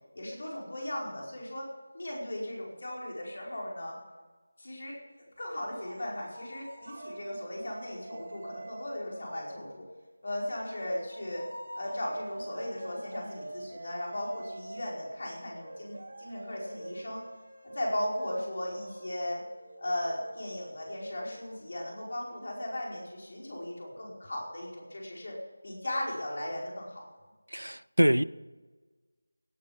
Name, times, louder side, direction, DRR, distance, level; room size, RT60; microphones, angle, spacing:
voice 1, 0.1-1.6 1.9-4.0 4.6-5.0 5.4-9.8 10.2-11.4 11.8-17.2 17.6-19.4 19.8-25.4 25.6-27.0, left 1 dB, 45° left, 5.0 m, -37 dB
sound 1, 5.4-9.7 10.3-21.6, right 2 dB, 50° right, 3.2 m, -47 dB
voice 2, 27.5-28.2, equal, 80° right, 0.4 m, -24 dB
17.5 x 9.8 x 5.8 m
figure-of-eight pair, 165°, 0 cm